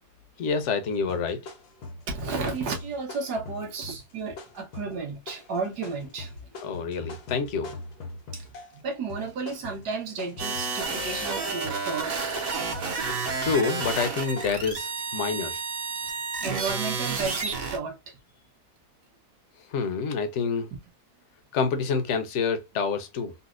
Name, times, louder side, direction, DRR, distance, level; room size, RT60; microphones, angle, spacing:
voice 1, 0.4-1.4 6.6-7.7 13.4-15.6 19.7-20.7 21.5-23.3, left 5 dB, 60° left, 0.8 m, -27 dB
sound 1, 1.0-8.8 9.1-11.3 11.6-14.5, left 2 dB, 75° left, 1.3 m, -42 dB
voice 2, 2.1-6.5 8.3-8.5 8.7-12.8 16.0-18.2 19.8-19.9, right 4 dB, 80° right, 1.6 m, -33 dB
sound 2, 10.4-17.8, right 4 dB, 50° right, 0.7 m, -30 dB
4.0 x 2.1 x 2.4 m
omnidirectional pair, 1.7 m